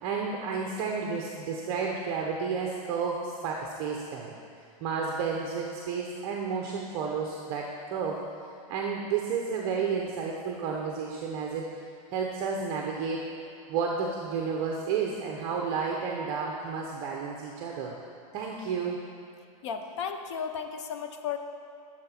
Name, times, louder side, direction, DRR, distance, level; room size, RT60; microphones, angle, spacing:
voice 1, 0.0-4.3 4.8-8.2 8.7-13.2 13.7-17.9 18.3-19.0, right 5 dB, 35° right, 0 dB, 0.8 m, -31 dB
voice 2, 19.6-21.4, left 7 dB, 50° left, 6 dB, 0.9 m, -34 dB
13.0 x 6.9 x 4.4 m, 2.6 s
supercardioid pair, 165°, 19 cm